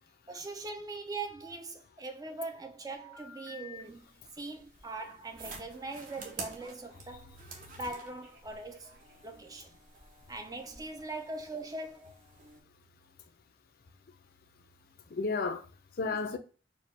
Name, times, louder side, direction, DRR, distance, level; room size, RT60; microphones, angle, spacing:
voice 1, 0.3-4.1 4.3-7.4 7.7-9.7 10.3-12.2 16.0-16.2, right 2 dB, 20° right, 0.4 m, -41 dB
Telephone, 2.9-3.8 4.9-7.1 7.9-9.4, left 5 dB, 85° right, 1.9 m, -54 dB
sound 1, 3.8-12.6, right 3 dB, 45° right, 0.8 m, -50 dB
voice 2, 15.1-16.4, left 4 dB, 55° left, 0.4 m, -34 dB
4.2 x 2.2 x 3.1 m
head